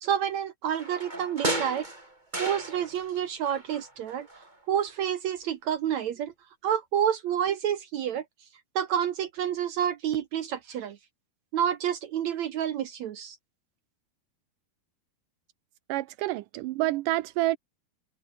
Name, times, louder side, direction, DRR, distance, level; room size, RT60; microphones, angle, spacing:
voice 1, 0.0-1.9 2.4-4.3 4.7-6.3 6.6-8.2 8.8-11.0 11.5-13.4, right 9 dB, 70° right, 1.8 m, -29 dB
sound 1, 0.8-3.2 3.5-4.5 4.9-5.0, right 1 dB, 10° right, 4.1 m, -34 dB
voice 2, 15.9-17.6, right 17 dB, 85° right, 1.8 m, -28 dB
omnidirectional pair, 4.6 m